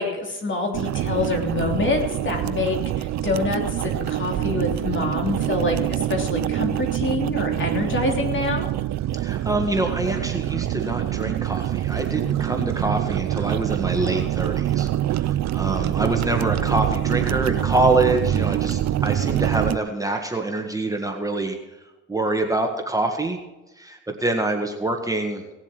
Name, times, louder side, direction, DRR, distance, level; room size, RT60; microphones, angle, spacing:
voice 1, 0.0-8.7, left 3 dB, 40° left, 2 dB, 3.2 m, -26 dB
sound 1, 0.7-19.8, right 12 dB, 65° right, 0.5 m, -25 dB
voice 2, 9.2-21.6 22.1-23.4 23.8-25.4, right 2 dB, 10° right, 3 dB, 1.7 m, -25 dB
18.0 x 7.4 x 6.1 m, 1.1 s
cardioid pair, 90°, 30 cm